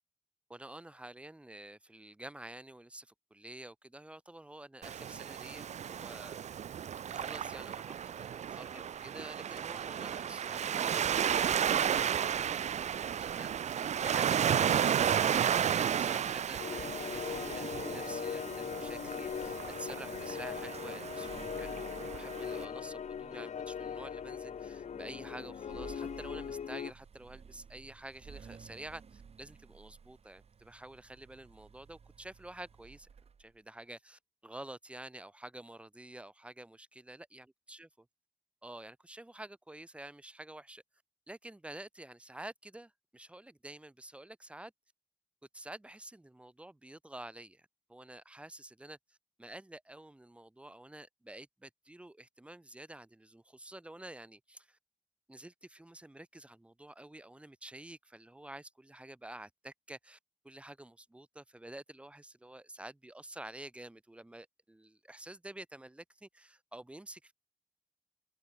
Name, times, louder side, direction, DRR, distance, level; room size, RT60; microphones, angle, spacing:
voice 1, 0.5-6.4 7.1-12.4 12.8-21.9 22.1-33.1 33.4-37.9 38.6-40.8 41.3-44.7 45.5-54.8 55.3-60.2 60.4-67.3, right 1 dB, 10° right, 0.5 m, -49 dB
Waves surf, 4.8-22.7, right 9 dB, 75° right, 0.4 m, -33 dB
sound 1, 16.6-26.9, left 8 dB, 85° left, 0.6 m, -40 dB
sound 2, 20.7-33.6, right 6 dB, 60° right, 1.0 m, -55 dB
open air
wide cardioid pair, 140°, 12 cm